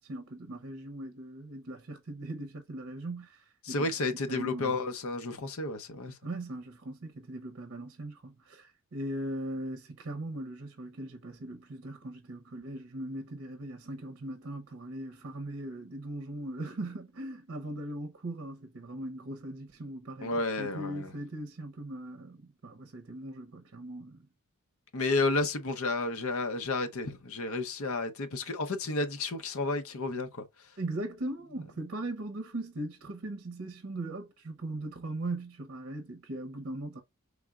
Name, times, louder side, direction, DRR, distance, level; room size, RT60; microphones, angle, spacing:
voice 1, 0.0-3.9 4.3-4.8 6.2-24.2 30.8-37.0, right 1 dB, 60° right, 0.7 m, -39 dB
voice 2, 3.6-6.2 20.2-21.1 24.9-30.4, left 3 dB, 70° left, 0.8 m, -31 dB
4.7 x 3.5 x 2.4 m
head